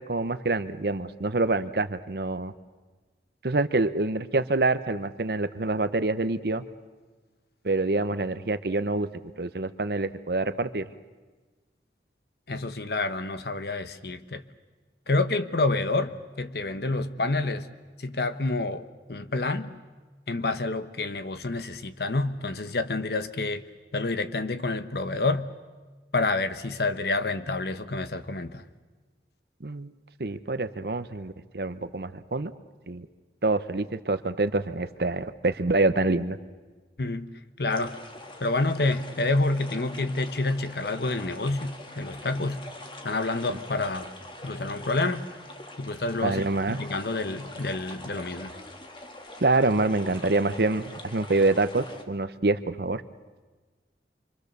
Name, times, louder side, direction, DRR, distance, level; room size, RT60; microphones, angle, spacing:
voice 1, 0.0-2.5 3.4-6.6 7.6-9.1 9.4-10.9 29.6-29.9 30.2-32.5 32.9-33.1 33.4-36.4 43.5-43.6 46.2-46.8 49.4-53.0, right 2 dB, 60° right, 13 dB, 0.8 m, -26 dB
voice 2, 12.5-14.4 15.1-17.7 18.0-19.8 20.3-23.6 23.9-25.5 26.1-28.6 37.0-37.3 37.6-38.0 38.4-42.6 43.0-44.1 44.4-45.3 45.8-48.5, left 2 dB, 65° left, 11 dB, 1.0 m, -28 dB
sound 1, 37.7-52.0, left 1 dB, 30° left, 1.6 m, -43 dB
27.5 x 24.5 x 6.8 m, 1.3 s
head